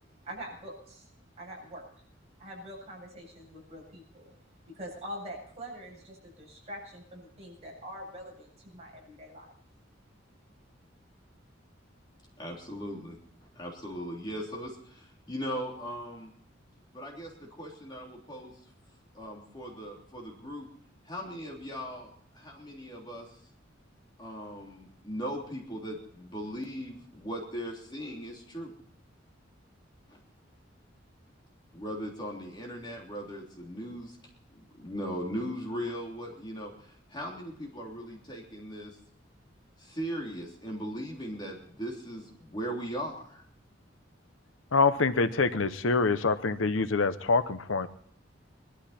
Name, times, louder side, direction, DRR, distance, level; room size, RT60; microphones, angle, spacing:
voice 1, 0.2-1.1 1.4-1.8 2.4-4.3 4.7-9.5, equal, 35° right, -1 dB, 7.7 m, -44 dB
voice 2, 12.4-16.3 16.9-18.6 19.1-20.7 21.0-23.4 24.2-28.7 30.1-30.2 31.7-34.2 34.5-39.0 39.8-43.4, equal, 25° left, -1 dB, 3.2 m, -39 dB
voice 3, 44.7-47.9, left 4 dB, 80° left, 12 dB, 0.8 m, -25 dB
21.5 x 13.0 x 4.3 m, 0.62 s
head